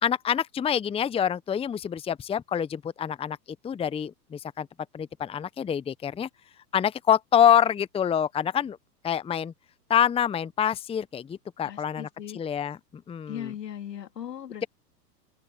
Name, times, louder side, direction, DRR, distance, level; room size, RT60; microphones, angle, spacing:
voice 1, 0.0-3.4 3.6-4.7 4.9-6.3 6.7-8.8 9.0-9.5 9.9-12.1 12.3-13.5, left 9 dB, 10° left, 0.9 m, -26 dB
voice 2, 11.6-12.4 13.3-14.7, left 10 dB, 75° left, 3.6 m, -38 dB
open air
hypercardioid pair, 105°, 49 cm